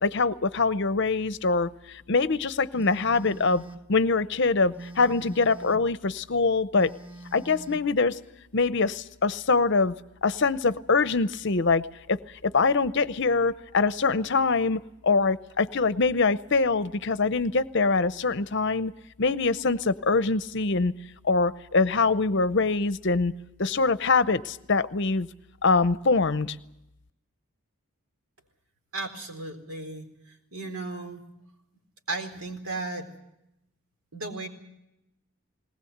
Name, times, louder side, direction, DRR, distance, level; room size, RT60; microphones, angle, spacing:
voice 1, 0.0-3.6 3.9-6.9 7.3-8.2 8.5-9.9 10.2-18.9 19.2-20.9 21.2-23.3 23.6-25.3 25.6-26.6, left 4 dB, 50° left, 14 dB, 0.7 m, -24 dB
Telephone, 2.7-3.9 4.7-5.9 6.7-7.9, right 2 dB, 10° right, 0.7 m, -44 dB
voice 2, 28.9-31.2 32.1-33.1 34.1-34.5, right 2 dB, 85° right, 4 dB, 4.0 m, -35 dB
20.0 x 19.5 x 8.0 m, 0.85 s
head